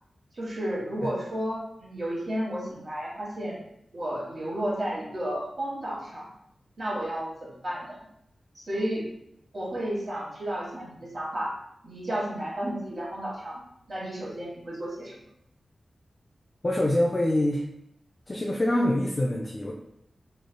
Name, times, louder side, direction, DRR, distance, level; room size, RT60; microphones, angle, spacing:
voice 1, 0.3-3.6 3.9-6.2 6.8-8.0 8.7-9.0 9.5-11.5 11.8-13.6 13.9-15.2, right 1 dB, 45° right, -6 dB, 1.4 m, -32 dB
voice 2, 16.6-17.6 18.3-19.7, left 1 dB, 25° left, -2 dB, 0.4 m, -25 dB
3.8 x 3.2 x 2.2 m, 0.75 s
wide cardioid pair, 145°, 0 cm